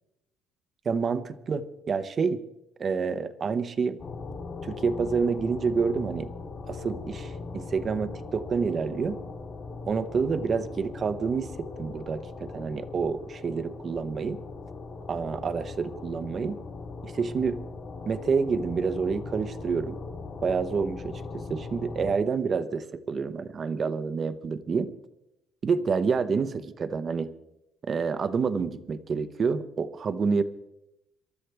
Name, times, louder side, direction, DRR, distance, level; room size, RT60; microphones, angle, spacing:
voice 1, 0.9-2.4 2.8-4.0 4.6-6.3 6.7-9.2 9.9-14.4 15.1-16.6 17.0-17.6 18.1-20.0 20.4-21.2 21.5-24.9 25.6-27.3 27.9-30.4, right 5 dB, 35° right, 11 dB, 0.9 m, -28 dB
sound 1, 4.0-22.1, left 3 dB, 40° left, 3.7 m, -39 dB
27.0 x 13.0 x 3.4 m, 0.88 s
cardioid pair, 140°, 0 cm